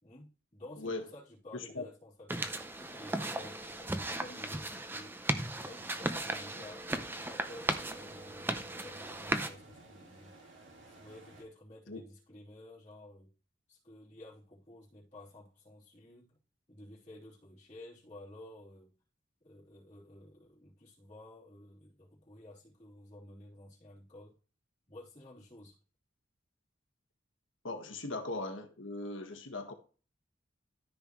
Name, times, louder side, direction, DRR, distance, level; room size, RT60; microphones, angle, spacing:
voice 1, 0.0-5.2 5.6-6.9 7.2-10.4 10.9-13.3 13.7-16.4 16.7-18.9 19.4-24.4 24.9-25.8, left 1 dB, 30° left, 3.6 m, -53 dB
voice 2, 0.8-1.1 1.5-1.8 11.9-12.0 27.6-29.7, left 2 dB, 85° left, 1.6 m, -39 dB
sound 1, 2.3-9.5, right 1 dB, 10° right, 0.6 m, -36 dB
sound 2, 5.8-11.4, right 2 dB, 80° right, 2.5 m, -56 dB
13.5 x 5.5 x 3.1 m
head